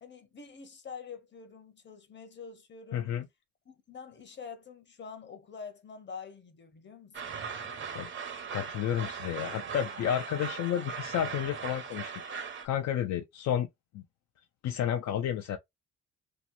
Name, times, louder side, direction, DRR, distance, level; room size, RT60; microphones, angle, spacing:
voice 1, 0.0-3.2 3.7-7.3, left 5 dB, 35° left, 0.8 m, -46 dB
voice 2, 2.9-3.3 7.9-8.1 8.5-13.7 13.9-14.0 14.6-15.6, left 10 dB, 65° left, 0.5 m, -31 dB
sound 1, 7.1-12.7, right 6 dB, 40° right, 0.7 m, -39 dB
2.9 x 2.1 x 2.5 m
cardioid pair, 90°, 30 cm